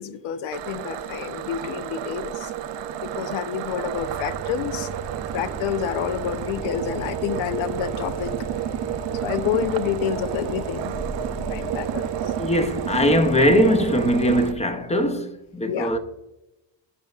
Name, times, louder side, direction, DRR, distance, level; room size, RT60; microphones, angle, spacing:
voice 1, 0.0-2.5 3.0-4.9 5.3-8.3 9.2-10.9 11.4-12.1 15.7-15.9, left 9 dB, 80° left, 0.7 m, -28 dB
sound 1, 0.5-14.5, right 10 dB, 65° right, 0.6 m, -31 dB
sound 2, 4.0-14.5, right 5 dB, 35° right, 0.9 m, -38 dB
sound 3, 6.2-11.7, left 1 dB, 60° left, 1.8 m, -40 dB
voice 2, 12.3-16.0, equal, 15° left, 0.6 m, -21 dB
12.0 x 5.3 x 2.4 m
cardioid pair, 105°, 47 cm